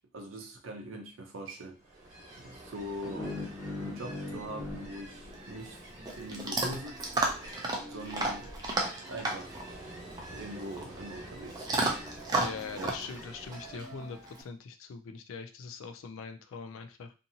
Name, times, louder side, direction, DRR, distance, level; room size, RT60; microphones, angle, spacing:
voice 1, 0.0-3.4 3.8-7.1 7.9-8.5 9.1-9.6 10.3-11.7 12.7-12.9, right 1 dB, 65° right, 2 dB, 0.5 m, -42 dB
Ocean, 1.8-13.9, right 1 dB, 35° right, 1.1 m, -48 dB
sound 1, 3.0-6.1, left 2 dB, 5° left, 0.8 m, -40 dB
Chewing mastication / Dog, 5.3-14.4, right 2 dB, 20° right, 0.4 m, -34 dB
voice 2, 12.4-17.1, left 5 dB, 70° left, 7 dB, 0.3 m, -42 dB
2.7 x 2.5 x 2.7 m, 0.32 s
head